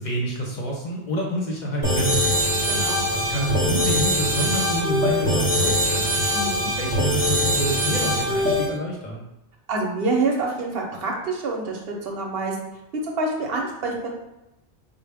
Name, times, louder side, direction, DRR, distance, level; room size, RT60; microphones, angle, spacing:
voice 1, 0.0-2.4 2.9-6.4 6.8-9.2, equal, 45° left, -2 dB, 0.7 m, -28 dB
sound 1, 1.8-8.7, equal, 10° left, 0.9 m, -22 dB
voice 2, 2.7-3.0 6.3-6.7 9.7-12.6 13.0-14.1, right 3 dB, 65° right, 0 dB, 0.9 m, -26 dB
4.5 x 2.1 x 3.3 m, 0.92 s
omnidirectional pair, 1.2 m